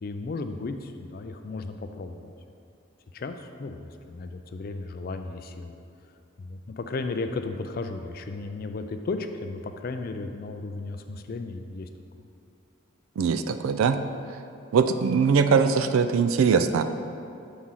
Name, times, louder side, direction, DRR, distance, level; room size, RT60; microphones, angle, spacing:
voice 1, 0.0-2.3 3.1-3.8 4.1-5.7 6.4-11.9, left 3 dB, 45° left, 7 dB, 0.3 m, -34 dB
voice 2, 13.2-14.0 14.7-16.8, right 6 dB, 75° right, 9 dB, 0.3 m, -21 dB
6.0 x 3.7 x 5.6 m, 2.6 s
head